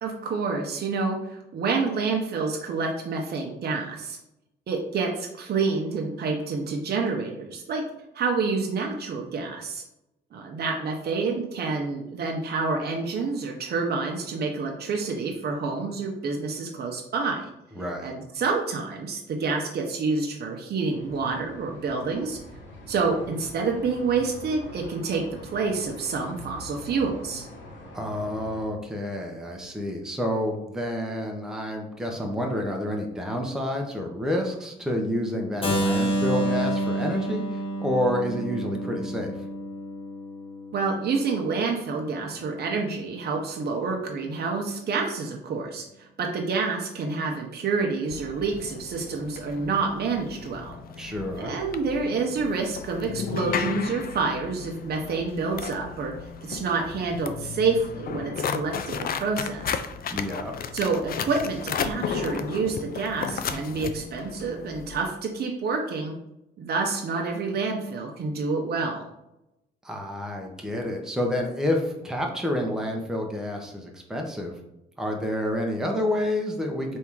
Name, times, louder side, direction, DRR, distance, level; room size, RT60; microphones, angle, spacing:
voice 1, 0.0-4.2 4.7-7.8 8.1-9.8 10.3-17.5 18.0-22.4 22.9-25.2 25.5-27.4 40.7-59.7 60.7-66.1 66.6-69.0, right 4 dB, 55° right, 1 dB, 0.8 m, -28 dB
voice 2, 17.8-18.1 27.9-39.3 51.0-51.5 60.1-60.5 69.8-74.5 75.0-77.0, left 1 dB, 5° right, 1 dB, 0.8 m, -29 dB
sound 1, 20.9-28.7, left 1 dB, 70° left, 1.2 m, -44 dB
Keyboard (musical), 35.6-41.5, right 1 dB, 30° left, 1.0 m, -29 dB
sound 2, 48.1-65.0, left 6 dB, 50° left, 0.4 m, -34 dB
3.5 x 2.7 x 4.6 m, 0.86 s
cardioid pair, 90°, 20 cm